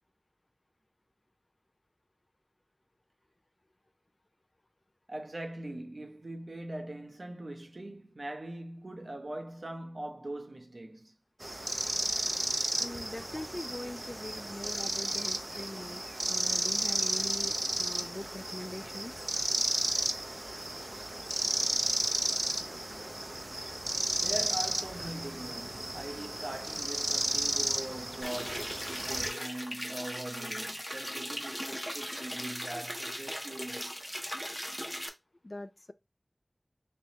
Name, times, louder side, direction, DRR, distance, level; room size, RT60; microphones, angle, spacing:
voice 1, 5.1-11.1 24.1-34.0, right 1 dB, 75° right, 0.7 m, -41 dB
sound 1, 11.4-29.3, right 1 dB, 45° right, 0.4 m, -33 dB
voice 2, 12.8-19.1 35.4-35.9, left 1 dB, 50° left, 0.3 m, -42 dB
sound 2, 28.2-35.1, equal, ahead, 0.6 m, -38 dB
3.4 x 3.0 x 2.8 m
wide cardioid pair, 45°, 0 cm